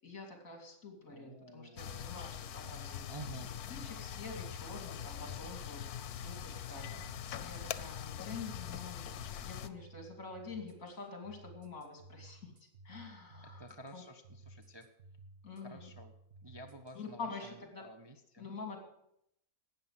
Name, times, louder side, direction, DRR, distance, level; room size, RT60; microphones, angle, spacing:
voice 1, 0.0-3.4 3.7-5.9 6.2-7.0 7.4-12.5 12.8-13.7 13.9-14.0 15.4-15.9 16.9-17.9 18.4-18.8, left 4 dB, 65° left, 3 dB, 3.2 m, -47 dB
voice 2, 1.1-2.1 3.1-3.5 13.4-14.9 15.6-16.1 16.4-18.5, right 1 dB, 25° right, 4 dB, 0.7 m, -51 dB
sound 1, 1.8-9.7, left 9 dB, 90° left, 1.2 m, -43 dB
sound 2, 4.3-17.1, right 2 dB, 40° right, 1.5 m, -57 dB
12.5 x 8.8 x 7.5 m, 0.77 s
omnidirectional pair, 1.5 m